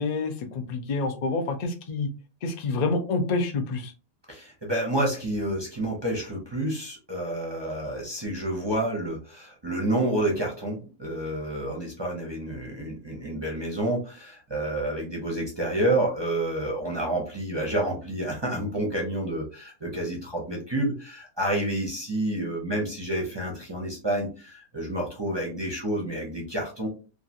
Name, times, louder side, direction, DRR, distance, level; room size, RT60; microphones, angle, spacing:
voice 1, 0.0-2.1 2.4-3.9, left 3 dB, 90° left, 5 dB, 0.3 m, -28 dB
voice 2, 4.3-26.9, right 1 dB, 30° right, -1 dB, 0.5 m, -29 dB
3.0 x 2.5 x 2.6 m, 0.34 s
omnidirectional pair, 1.5 m